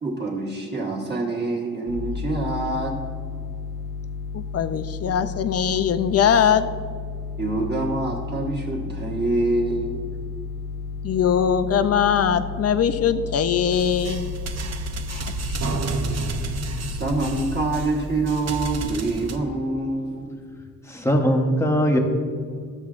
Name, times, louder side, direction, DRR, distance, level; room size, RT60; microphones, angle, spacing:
voice 1, 0.0-2.9 7.4-10.1 16.1-16.2 16.9-20.3, right 2 dB, 30° right, -2 dB, 1.4 m, -26 dB
sound 1, 1.9-17.9, left 5 dB, 75° left, 1.1 m, -33 dB
voice 2, 4.3-6.7 11.0-14.3 15.1-15.2 15.5-15.8, left 8 dB, 45° left, 11 dB, 0.4 m, -21 dB
sound 2, 13.7-19.4, right 4 dB, 50° right, 0.6 m, -31 dB
voice 3, 20.9-22.0, equal, 10° left, 2 dB, 0.8 m, -20 dB
13.5 x 7.3 x 2.5 m, 2.1 s
wide cardioid pair, 145°, 35 cm